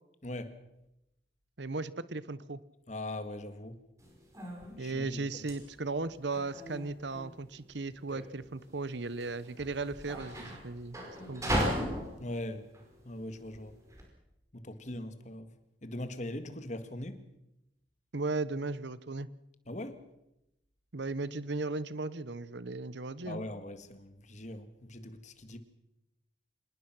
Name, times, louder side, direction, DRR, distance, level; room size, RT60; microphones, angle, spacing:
voice 1, 1.6-2.6 4.8-11.0 11.3-11.7 18.1-19.3 20.9-23.4, right 3 dB, 65° right, 0.9 m, -36 dB
voice 2, 2.9-3.8 4.8-5.2 12.2-12.7 13.0-13.8 14.5-15.5 15.8-17.2 19.7-20.0 23.2-25.6, left 1 dB, 40° left, 1.8 m, -40 dB
sound 1, 4.0-14.1, equal, 15° right, 5.1 m, -38 dB
26.0 x 20.0 x 6.1 m
head